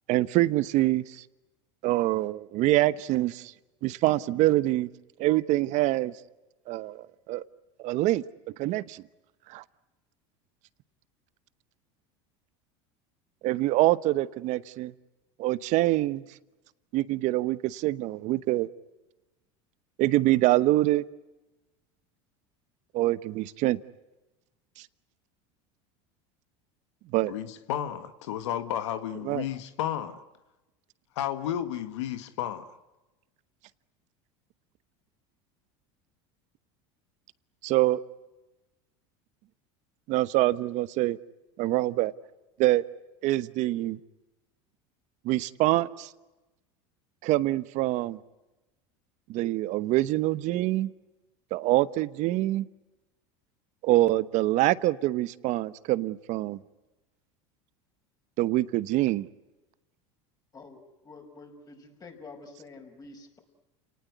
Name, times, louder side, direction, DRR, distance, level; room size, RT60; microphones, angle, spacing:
voice 1, 0.1-1.2 1.8-3.5 3.8-4.9 5.2-6.1 6.7-7.4 7.8-8.2 8.6-9.0 9.5-9.6 13.4-14.9 15.4-16.2 16.9-18.7 20.0-21.0 22.9-23.8 24.8-24.9 27.1-27.3 29.2-29.5 37.6-38.0 40.1-41.2 41.6-42.1 42.6-42.8 43.2-44.0 45.2-46.1 47.2-48.2 49.3-50.9 51.5-52.7 53.8-56.6 58.4-59.3, right 17 dB, 55° right, 16 dB, 1.0 m, -25 dB
voice 2, 27.3-30.2 31.1-32.6, left 11 dB, 85° left, 10 dB, 1.6 m, -32 dB
voice 3, 60.5-63.4, left 3 dB, 25° left, 3 dB, 5.8 m, -48 dB
29.0 x 19.0 x 9.5 m, 1.1 s
supercardioid pair, 115°, 15 cm